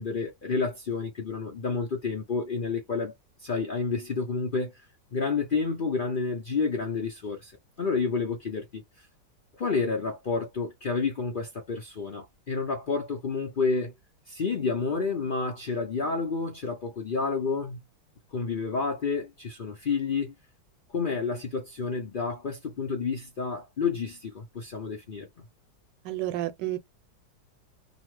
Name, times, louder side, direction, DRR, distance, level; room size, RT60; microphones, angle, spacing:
voice 1, 0.0-3.1 3.4-4.7 5.1-7.5 7.8-8.8 9.6-13.9 14.3-17.8 18.3-20.3 20.9-25.3, left 4 dB, 70° left, 0.5 m, -30 dB
voice 2, 26.0-26.8, right 14 dB, 80° right, 1.3 m, -30 dB
2.9 x 2.1 x 3.1 m
omnidirectional pair, 1.9 m